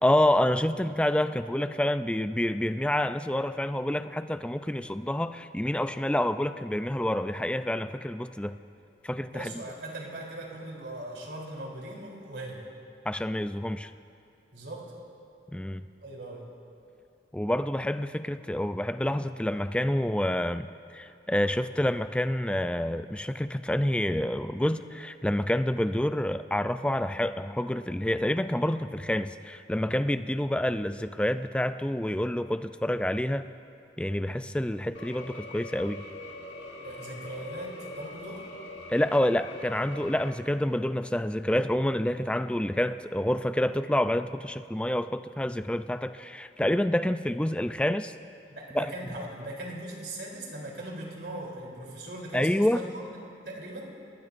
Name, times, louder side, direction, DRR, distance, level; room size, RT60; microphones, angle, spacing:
voice 1, 0.0-8.6 9.0-9.5 13.1-13.9 15.5-15.8 17.3-33.5 34.0-36.0 38.9-48.1 48.7-48.9 52.3-52.8, left 1 dB, 5° left, 11 dB, 0.3 m, -28 dB
voice 2, 9.3-12.6 14.5-14.9 16.0-16.5 36.8-38.5 48.5-53.0 53.5-53.9, right 1 dB, 75° right, -2 dB, 3.5 m, -39 dB
sound 1, 34.9-40.3, left 2 dB, 90° left, 1.6 m, -43 dB
28.0 x 20.0 x 2.6 m, 2.6 s
head